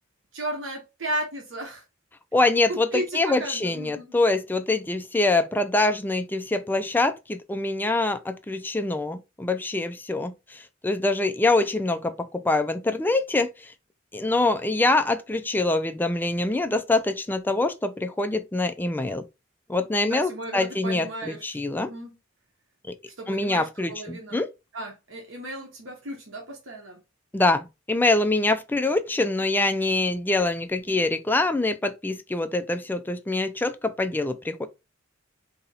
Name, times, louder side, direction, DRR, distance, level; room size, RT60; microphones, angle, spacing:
voice 1, 0.3-1.8 2.7-4.2 20.0-22.2 23.2-24.4 24.7-27.0, right 1 dB, 85° right, 1.0 m, -35 dB
voice 2, 2.3-2.9 3.1-13.5 14.1-19.2 19.7-21.9 22.9-23.0 23.3-24.5 27.3-34.7, left 2 dB, 10° left, 0.3 m, -24 dB
2.8 x 2.8 x 3.9 m
head